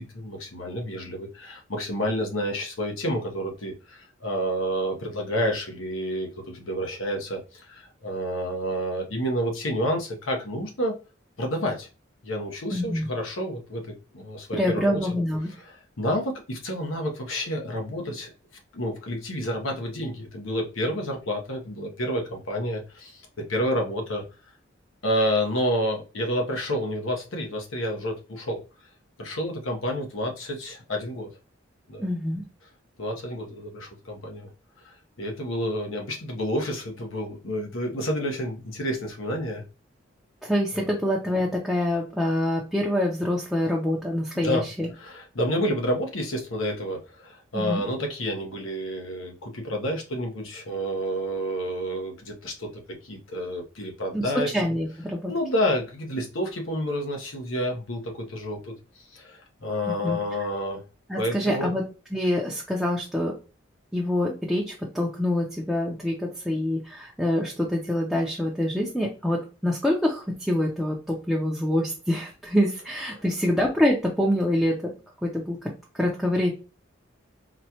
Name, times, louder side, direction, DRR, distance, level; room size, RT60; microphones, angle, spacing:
voice 1, 0.0-11.0 11.4-11.9 12.2-15.0 15.6-18.3 18.7-24.2 25.0-28.6 29.2-31.3 31.9-32.0 33.0-34.5 34.8-39.6 40.7-40.9 44.3-44.6 45.0-54.5 55.3-60.8 61.2-61.7 73.1-73.2, equal, 85° left, 1 dB, 1.0 m, -29 dB
voice 2, 12.7-13.1 14.5-15.5 32.0-32.4 40.4-44.9 47.5-47.8 54.1-55.3 59.9-60.2 61.1-61.8 62.1-63.3 63.9-74.9 75.2-75.7 75.9-76.5, left 1 dB, ahead, -3 dB, 0.5 m, -26 dB
4.2 x 2.3 x 2.8 m, 0.33 s
head